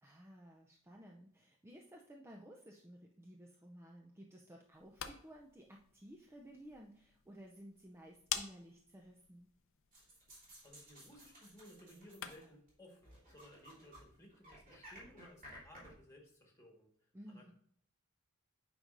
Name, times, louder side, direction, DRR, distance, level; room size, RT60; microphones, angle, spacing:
voice 1, 0.0-9.5 17.1-17.5, equal, 10° right, 0 dB, 0.5 m, -55 dB
sound 1, 4.7-12.6, left 10 dB, 65° left, 0.6 m, -49 dB
sound 2, 9.9-12.7 13.0-14.0 14.3-15.9, equal, 40° right, 3.1 m, -56 dB
voice 2, 10.6-17.5, equal, 15° left, 0 dB, 1.5 m, -59 dB
9.0 x 5.3 x 2.6 m, 0.65 s
head